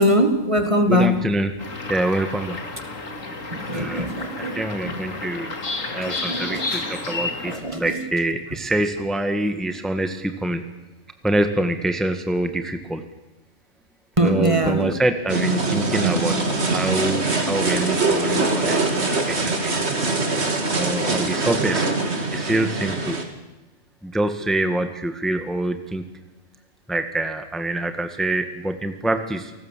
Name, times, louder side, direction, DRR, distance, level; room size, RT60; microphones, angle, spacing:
voice 1, 0.0-1.2 3.5-4.6 4.8-4.9 6.0-6.8 7.5-8.0 14.2-14.9, equal, 25° right, 7 dB, 1.8 m, -22 dB
voice 2, 0.9-1.5 1.9-2.6 3.7-4.1 4.5-5.6 5.9-10.6 11.2-13.0 14.2-16.4 16.7-19.8 20.8-21.9 22.3-23.2 24.0-26.0 26.9-29.5, right 1 dB, ahead, 8 dB, 1.5 m, -25 dB
sound 1, 1.6-7.6, left 3 dB, 70° left, 2.9 m, -31 dB
sound 2, 15.3-23.2, right 3 dB, 50° right, 2.8 m, -23 dB
29.0 x 19.0 x 7.5 m, 1.0 s
omnidirectional pair, 1.4 m